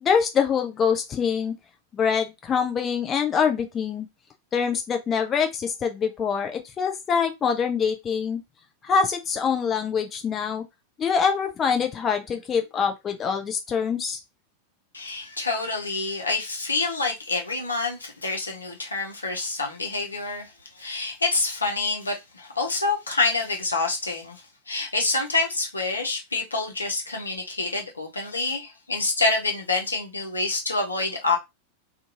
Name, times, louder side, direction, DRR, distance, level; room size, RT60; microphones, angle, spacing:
voice 1, 0.0-1.5 1.9-4.1 4.5-8.4 8.8-10.6 11.0-14.2, left 6 dB, 25° left, 0.4 m, -24 dB
voice 2, 14.9-31.4, left 3 dB, 80° left, 0.8 m, -27 dB
2.5 x 2.4 x 2.7 m
figure-of-eight pair, 90°, 0 cm